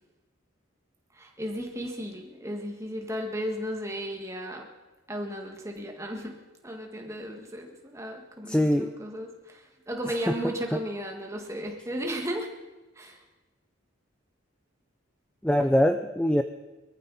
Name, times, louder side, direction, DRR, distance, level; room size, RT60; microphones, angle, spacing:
voice 1, 1.1-4.7 5.1-12.5 12.9-13.2, equal, 15° right, 2 dB, 1.8 m, -35 dB
voice 2, 8.5-8.9 10.3-10.4 15.4-16.4, equal, 5° left, 7 dB, 0.4 m, -22 dB
22.0 x 14.5 x 4.2 m, 1.2 s
head